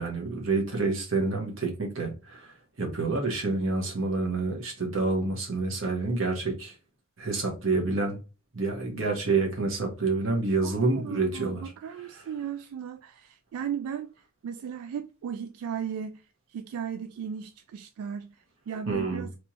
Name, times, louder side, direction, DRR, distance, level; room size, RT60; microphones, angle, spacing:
voice 1, 0.0-6.7 7.2-8.2 8.5-11.7 12.1-12.2 18.9-19.3, right 3 dB, 65° right, 1.2 m, -28 dB
voice 2, 10.6-19.4, right 8 dB, 85° right, 0.3 m, -36 dB
3.3 x 3.0 x 2.8 m
head